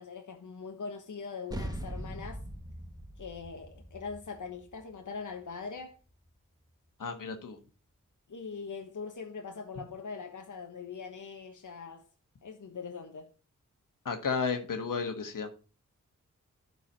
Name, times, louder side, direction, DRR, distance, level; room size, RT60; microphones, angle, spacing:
voice 1, 0.0-2.4 3.2-6.0 8.3-12.0 12.4-13.3, left 5 dB, 70° left, 1.2 m, -42 dB
sound 1, 1.5-6.3, right 1 dB, 10° right, 1.5 m, -42 dB
voice 2, 7.0-7.6 14.0-15.5, left 5 dB, 90° left, 1.5 m, -33 dB
11.0 x 4.7 x 5.6 m
cardioid pair, 55°, 31 cm